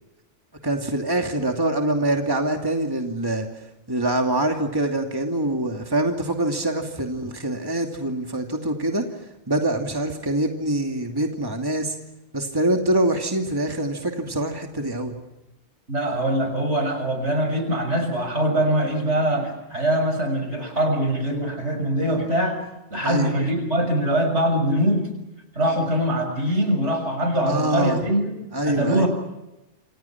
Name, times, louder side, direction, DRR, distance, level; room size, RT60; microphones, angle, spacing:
voice 1, 0.6-11.9 12.3-15.2 23.0-23.3 27.5-28.0 28.5-29.1, right 1 dB, 20° right, 3 dB, 2.7 m, -25 dB
voice 2, 15.9-22.6 22.9-25.0 25.5-28.4 28.6-29.1, right 1 dB, 75° right, 6 dB, 6.8 m, -23 dB
29.0 x 28.0 x 5.9 m, 0.96 s
omnidirectional pair, 1.2 m